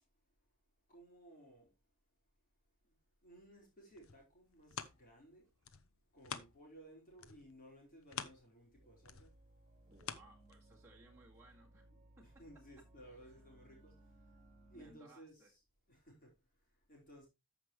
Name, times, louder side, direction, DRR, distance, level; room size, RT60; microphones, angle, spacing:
voice 1, 0.9-1.7 2.8-3.0 3.2-5.5 6.1-9.3 11.9-14.3 14.7-15.6 15.9-17.3, right 1 dB, 45° left, 4.8 m, -59 dB
sound 1, 3.7-6.9 7.2-11.0 11.5-11.6, left 7 dB, 75° left, 0.9 m, -49 dB
sound 2, 8.7-14.9, right 1 dB, 35° right, 2.0 m, -63 dB
voice 2, 9.9-11.9 13.3-13.4 14.7-15.5, right 2 dB, 15° right, 2.0 m, -62 dB
13.5 x 6.0 x 3.1 m
head